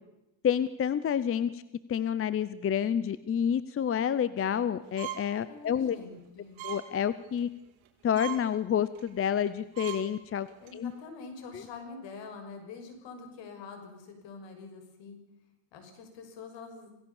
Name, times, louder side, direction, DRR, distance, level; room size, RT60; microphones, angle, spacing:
voice 1, 0.4-1.6 1.9-6.0 6.6-7.5 8.0-10.5 10.7-10.9 11.5-11.6, left 8 dB, 30° left, 15 dB, 0.7 m, -29 dB
sound 1, 5.0-5.3 5.8-5.9 6.6-6.8 7.2-7.5 7.9-8.0 8.1-8.4 8.9-9.1 9.5-9.6 9.7-10.0 10.5-10.7, right 14 dB, 75° right, 4.5 m, -39 dB
voice 2, 5.5-6.6 10.6-15.2 15.7-16.9, left 4 dB, 65° left, 5 dB, 6.3 m, -45 dB
26.5 x 17.0 x 7.2 m, 0.93 s
cardioid pair, 155°, 47 cm